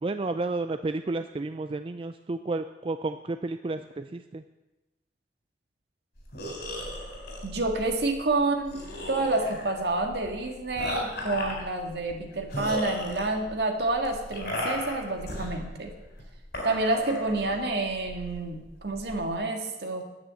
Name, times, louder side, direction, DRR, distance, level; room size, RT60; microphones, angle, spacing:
voice 1, 0.0-4.4, right 2 dB, 30° right, 9 dB, 0.4 m, -31 dB
sound 1, 6.2-19.3, left 1 dB, 60° left, 4.2 m, -37 dB
voice 2, 7.4-8.8 9.1-15.9 16.6-20.0, right 2 dB, 65° right, 3 dB, 1.9 m, -28 dB
10.0 x 9.3 x 7.6 m, 1.0 s
head